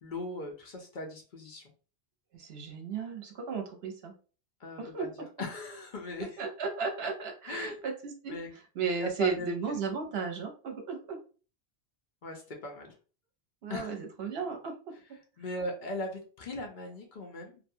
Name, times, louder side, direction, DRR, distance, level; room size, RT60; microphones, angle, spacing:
voice 1, 0.0-1.6 4.6-5.1 5.4-6.4 7.5-7.7 8.3-8.5 9.0-9.5 12.2-12.9 13.7-13.9 15.4-17.6, left 2 dB, 55° left, 1 dB, 0.7 m, -38 dB
voice 2, 2.3-4.1 4.8-5.1 6.2-8.3 8.8-11.2 13.6-14.9, right 5 dB, 75° right, 3 dB, 0.9 m, -34 dB
2.7 x 2.2 x 2.6 m, 0.37 s
omnidirectional pair, 1.1 m